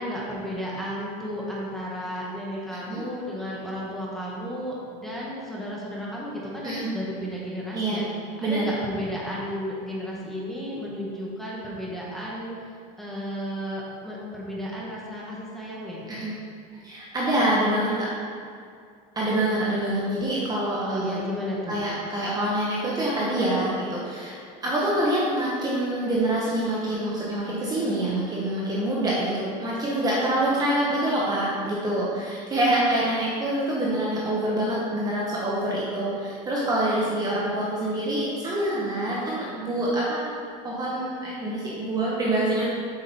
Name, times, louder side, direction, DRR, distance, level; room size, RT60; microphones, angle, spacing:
voice 1, 0.0-8.0 8.4-12.5 13.0-16.0 20.8-21.8, equal, ahead, -5 dB, 1.6 m, -33 dB
voice 2, 7.7-8.1 8.4-8.6 16.1-16.4 16.8-18.1 19.1-21.2 21.7-24.3 24.6-40.3 40.6-42.7, right 1 dB, 20° right, -5 dB, 1.2 m, -26 dB
7.9 x 6.4 x 4.4 m, 2.3 s
supercardioid pair, 145°, 19 cm